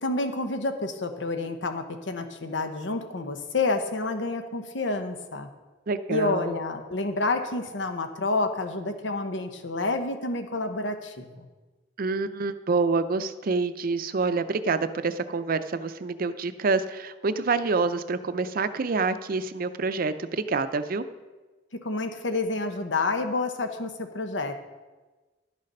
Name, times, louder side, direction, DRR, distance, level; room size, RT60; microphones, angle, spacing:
voice 1, 0.0-5.5 6.1-11.5 21.8-24.6, left 3 dB, 80° left, 7 dB, 0.9 m, -29 dB
voice 2, 5.9-6.6 12.0-21.1, right 4 dB, 50° right, 12 dB, 0.5 m, -27 dB
12.0 x 6.5 x 5.4 m, 1.2 s
head